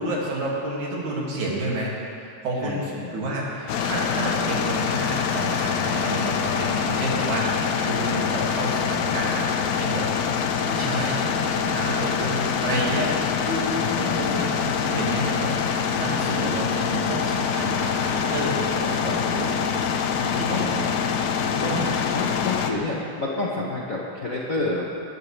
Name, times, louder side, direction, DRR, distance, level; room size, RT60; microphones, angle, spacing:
voice 1, 0.0-1.9 2.2-7.5 7.8-13.1 13.4-19.6 20.2-21.0 21.7-22.0, right 1 dB, 85° right, -4 dB, 3.8 m, -30 dB
voice 2, 2.6-3.2 13.8-14.5 20.5-20.8 21.4-21.8 22.1-24.9, left 3 dB, 55° left, -4 dB, 0.9 m, -29 dB
sound 1, 3.7-22.7, left 7 dB, 75° left, 1.9 m, -25 dB
19.5 x 13.0 x 3.3 m, 2.6 s
omnidirectional pair, 3.3 m